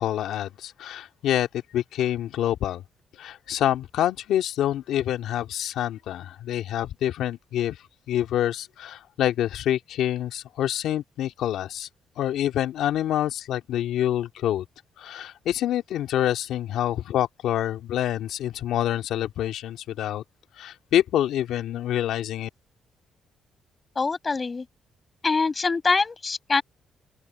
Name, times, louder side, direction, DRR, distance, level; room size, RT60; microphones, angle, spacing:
voice 1, 0.0-2.8 3.2-7.8 8.1-11.9 12.2-14.6 15.0-20.2 20.6-22.5, left 11 dB, 80° left, 2.3 m, -26 dB
voice 2, 24.0-24.7 25.2-26.6, left 4 dB, 30° left, 7.2 m, -24 dB
open air
cardioid pair, 90°, 0 cm